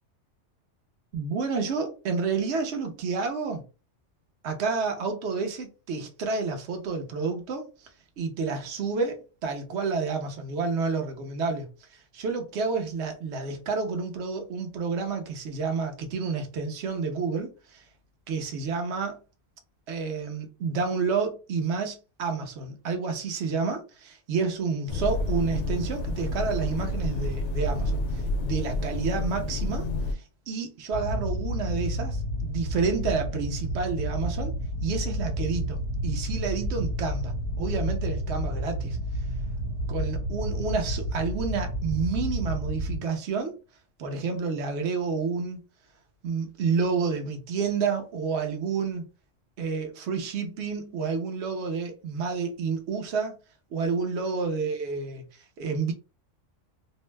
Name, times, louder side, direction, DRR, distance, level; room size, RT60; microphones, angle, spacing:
voice 1, 1.1-3.6 4.4-7.9 8.2-17.8 18.3-19.2 19.9-34.5 34.8-39.0 39.9-43.6 44.0-45.6 46.2-49.1 49.6-53.4 53.7-55.2 55.6-55.9, right 5 dB, 65° right, 1.0 m, -30 dB
sound 1, 24.9-30.1, left 2 dB, 75° left, 0.9 m, -29 dB
sound 2, 30.9-43.0, equal, 30° right, 1.0 m, -30 dB
2.6 x 2.1 x 3.2 m
omnidirectional pair, 1.3 m